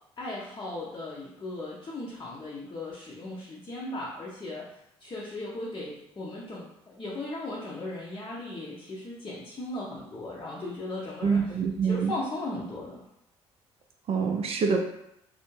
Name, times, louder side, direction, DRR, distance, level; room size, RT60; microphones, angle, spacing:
voice 1, 0.2-11.6 11.8-13.0, left 2 dB, 30° left, -5 dB, 0.7 m, -37 dB
voice 2, 11.2-12.1 14.1-14.8, right 5 dB, 40° right, 3 dB, 0.4 m, -25 dB
2.4 x 2.0 x 3.1 m, 0.77 s
figure-of-eight pair, 50°, 15 cm